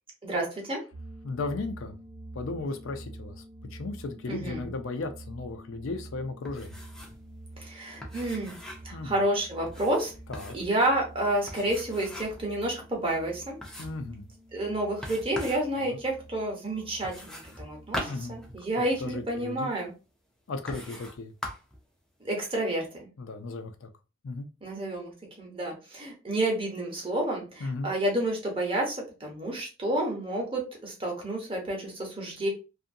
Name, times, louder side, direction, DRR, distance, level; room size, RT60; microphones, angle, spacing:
voice 1, 0.2-0.8 4.3-4.7 7.6-8.6 8.8-10.1 10.5-13.6 14.5-19.9 22.2-22.9 24.6-25.1 25.4-32.5, right 1 dB, 25° right, 0 dB, 0.9 m, -30 dB
sound 1, 0.9-19.6, right 2 dB, 85° right, 1.0 m, -48 dB
voice 2, 1.2-2.0 2.3-3.4 3.7-6.7 8.9-9.2 10.3-10.6 13.8-14.3 15.7-16.0 18.1-18.4 18.8-19.7 20.5-21.3 23.2-23.9 24.2-24.5 27.6-27.9, left 3 dB, 60° left, 7 dB, 0.4 m, -35 dB
sound 2, 6.4-7.2 7.5-7.6 8.0-9.0 9.7-10.7 11.5-12.5 12.9-13.0 13.6-14.1 15.0-15.7 17.0-19.0 19.8-19.9 20.7-21.2 21.4-21.8, equal, 5° left, 0.5 m, -40 dB
2.7 x 2.5 x 2.6 m, 0.31 s
head